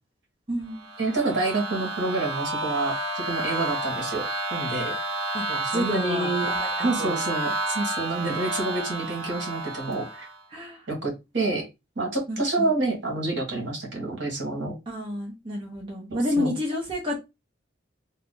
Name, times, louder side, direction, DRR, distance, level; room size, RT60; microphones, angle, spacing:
voice 1, 0.5-0.9 5.3-5.4 5.7-7.2 10.5-10.9 12.3-12.7 14.9-17.2, left 1 dB, 25° right, 0.7 m, -30 dB
sound 1, 0.7-10.4, right 2 dB, 80° right, 0.8 m, -30 dB
voice 2, 1.0-4.9 5.5-6.5 6.8-10.3 10.9-11.6 11.9-14.7 16.1-16.5, right 2 dB, 60° right, 1.4 m, -28 dB
2.8 x 2.3 x 3.7 m
head